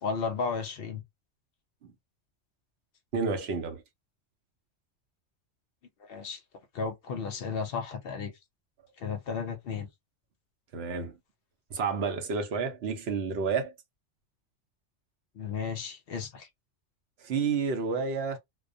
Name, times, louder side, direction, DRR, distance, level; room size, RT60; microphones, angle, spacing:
voice 1, 0.0-1.0 6.0-6.4 6.7-8.3 9.0-9.9 15.4-16.5, left 5 dB, 60° left, 0.7 m, -34 dB
voice 2, 3.1-3.8 10.7-11.2 11.7-13.7 17.2-18.4, right 5 dB, 65° right, 0.8 m, -30 dB
2.3 x 2.1 x 2.5 m
omnidirectional pair, 1.3 m